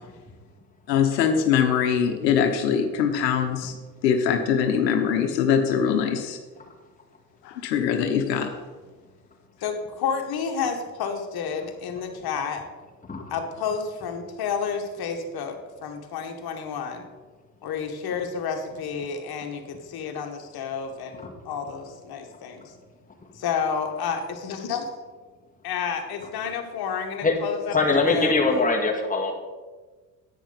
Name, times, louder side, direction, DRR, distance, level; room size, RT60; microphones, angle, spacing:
voice 1, 0.9-3.8 4.0-6.4 7.4-8.6, left 7 dB, 80° left, 6 dB, 1.1 m, -22 dB
voice 2, 9.6-12.6 13.3-17.1 17.6-22.7 23.3-24.8 25.6-28.4, left 6 dB, 50° left, 4 dB, 1.8 m, -30 dB
voice 3, 27.7-29.3, left 3 dB, 15° left, 0 dB, 2.2 m, -22 dB
10.0 x 9.1 x 4.1 m, 1.3 s
hypercardioid pair, 65°, 49 cm